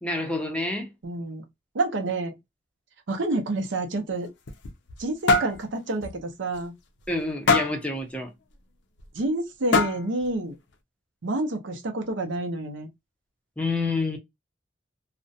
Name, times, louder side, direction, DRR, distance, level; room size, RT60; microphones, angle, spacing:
voice 1, 0.0-0.9 7.1-8.3 13.6-14.2, left 2 dB, 5° left, 0.5 m, -28 dB
voice 2, 1.0-1.4 1.7-2.4 3.1-4.3 5.0-6.7 9.1-10.6 11.2-12.9, right 2 dB, 70° right, 0.6 m, -28 dB
sound 1, 4.2-5.0 5.3-5.6 6.0-6.2 6.5-6.6 7.5-7.8 9.0-9.1 9.7-10.2, left 3 dB, 65° left, 0.5 m, -22 dB
2.4 x 2.1 x 2.6 m
head